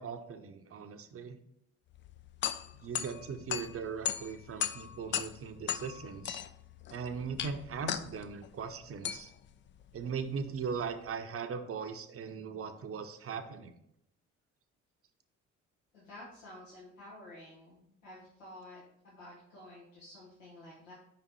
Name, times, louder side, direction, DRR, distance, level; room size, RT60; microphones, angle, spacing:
voice 1, 0.0-1.4 2.8-6.4 6.9-9.3 9.9-13.8, right 6 dB, 40° right, 8 dB, 0.7 m, -39 dB
sound 1, 1.9-11.1, left 9 dB, 35° left, 0.4 m, -39 dB
voice 2, 15.9-20.9, left 1 dB, 85° left, -8 dB, 1.3 m, -51 dB
5.3 x 4.0 x 4.5 m, 0.76 s
figure-of-eight pair, 45°, 37 cm